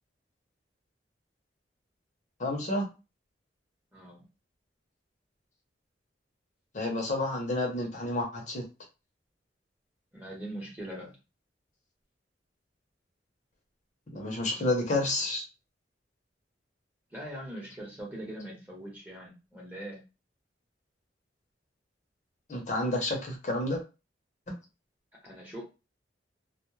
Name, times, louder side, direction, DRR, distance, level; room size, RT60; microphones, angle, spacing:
voice 1, 2.4-2.8 6.7-8.6 14.1-15.4 22.5-23.8, left 2 dB, 45° left, 0 dB, 0.7 m, -30 dB
voice 2, 3.9-4.2 10.1-11.1 17.1-20.0 25.2-25.6, right 1 dB, 10° right, -3 dB, 0.9 m, -41 dB
2.2 x 2.0 x 3.1 m, 0.29 s
head